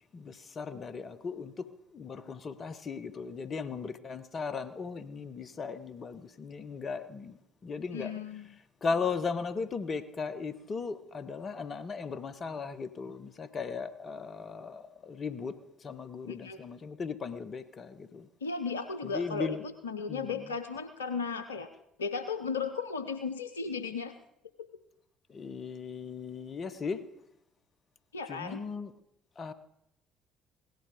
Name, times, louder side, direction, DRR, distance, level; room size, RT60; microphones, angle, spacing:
voice 1, 0.1-1.7 1.9-8.1 8.8-15.5 15.8-18.3 19.0-19.6 20.1-20.5 25.3-27.0 28.3-28.9 29.4-29.5, left 5 dB, 40° left, 12 dB, 1.0 m, -37 dB
voice 2, 7.9-8.5 16.3-16.6 18.4-19.6 19.8-21.7 22.0-24.1 24.6-24.7 28.1-28.6, left 5 dB, 85° left, 9 dB, 0.6 m, -35 dB
17.0 x 12.0 x 5.0 m, 0.78 s
figure-of-eight pair, 50°, 0 cm